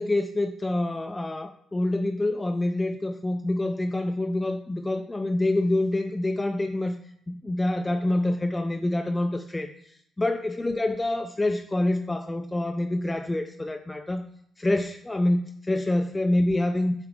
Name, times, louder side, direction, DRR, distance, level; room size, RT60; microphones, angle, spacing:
voice 1, 0.0-14.2 14.6-16.9, left 1 dB, 15° left, 6 dB, 0.4 m, -26 dB
6.8 x 4.9 x 3.3 m, 0.69 s
cardioid pair, 90°, 0 cm